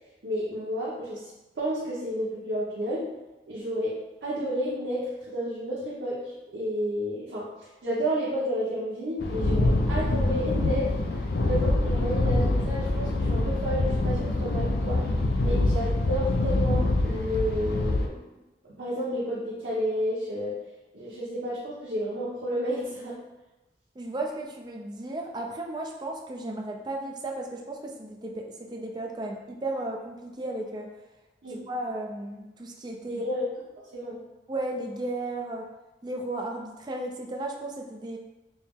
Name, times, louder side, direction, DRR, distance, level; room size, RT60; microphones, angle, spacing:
voice 1, 0.2-1.3 1.6-3.1 3.5-15.0 15.4-18.2 18.6-20.5 20.9-23.2 31.4-31.6 33.1-33.5 33.9-34.2, equal, 90° right, -8 dB, 0.9 m, -31 dB
sound 1, 9.2-18.1, left 2 dB, 65° left, 0.4 m, -25 dB
voice 2, 24.0-30.9 31.7-33.2 34.5-35.7 36.0-38.2, right 2 dB, 25° right, 1 dB, 0.4 m, -34 dB
4.5 x 2.0 x 3.6 m, 1.0 s
head